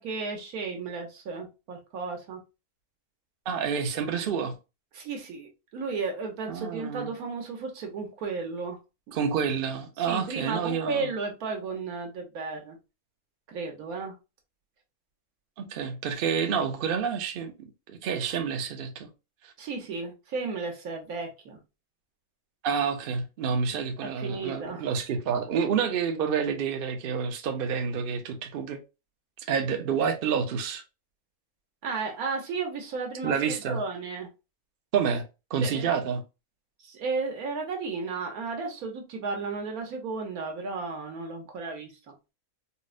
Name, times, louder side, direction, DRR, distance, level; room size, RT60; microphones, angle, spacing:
voice 1, 0.0-2.4 4.9-8.8 9.1-9.2 10.1-12.8 13.5-14.1 19.6-21.6 23.7-24.8 31.8-33.3 33.7-34.3 35.6-35.9 36.8-42.1, right 4 dB, 80° right, 1.4 m, -34 dB
voice 2, 3.5-4.6 6.5-7.1 9.1-11.1 15.6-19.1 19.4-19.5 22.6-28.8 29.5-30.8 33.2-33.8 34.9-35.2 35.5-36.2, right 6 dB, 55° right, 0.6 m, -28 dB
4.1 x 2.1 x 2.4 m
omnidirectional pair, 1.5 m